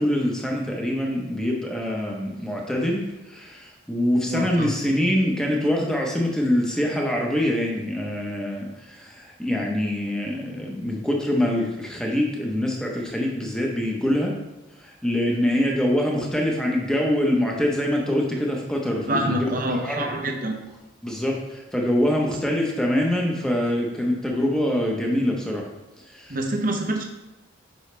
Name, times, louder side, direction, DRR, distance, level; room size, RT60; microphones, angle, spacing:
voice 1, 0.0-14.4 14.7-19.5 19.8-20.0 21.0-25.7 26.0-26.4, left 1 dB, 5° left, -1 dB, 1.0 m, -24 dB
voice 2, 4.3-4.7 15.7-15.8 19.1-20.6 26.3-27.0, right 1 dB, 40° right, 3 dB, 0.9 m, -26 dB
8.2 x 5.5 x 3.4 m, 0.98 s
head